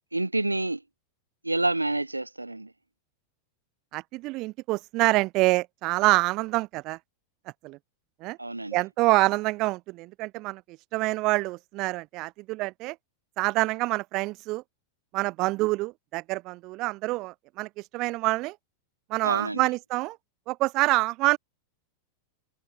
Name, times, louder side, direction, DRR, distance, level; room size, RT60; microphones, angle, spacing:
voice 1, 0.1-0.8 1.4-2.7 8.4-8.8 19.2-19.6, right 2 dB, 85° right, 1.1 m, -28 dB
voice 2, 3.9-7.0 7.6-7.8 8.2-8.4 8.7-10.6 10.9-13.0 13.4-14.6 15.1-18.6 19.1-20.2 20.5-21.4, right 21 dB, 40° right, 0.6 m, -26 dB
figure-of-eight pair, 90°, 0 cm